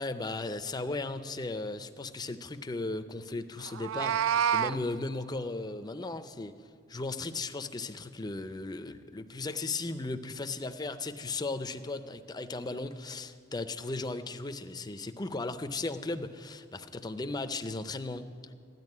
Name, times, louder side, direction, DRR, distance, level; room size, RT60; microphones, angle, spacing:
voice 1, 0.0-4.2 4.5-6.6 6.9-18.5, left 3 dB, 20° left, 10 dB, 0.5 m, -36 dB
Meow, 3.7-4.8, right 9 dB, 85° right, 0.4 m, -27 dB
13.5 x 11.0 x 9.5 m, 2.3 s
head